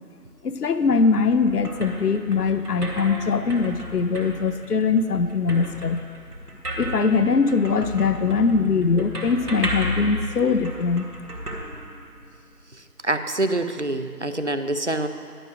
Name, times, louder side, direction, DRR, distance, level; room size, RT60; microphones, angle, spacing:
voice 1, 0.4-6.0 6.8-11.1, left 4 dB, 75° left, 10 dB, 0.7 m, -22 dB
sound 1, 1.0-12.5, equal, 70° right, 1.8 m, -34 dB
voice 2, 13.0-15.1, right 2 dB, 50° right, 9 dB, 0.5 m, -25 dB
11.0 x 6.2 x 6.2 m, 2.2 s
figure-of-eight pair, 170°, 47 cm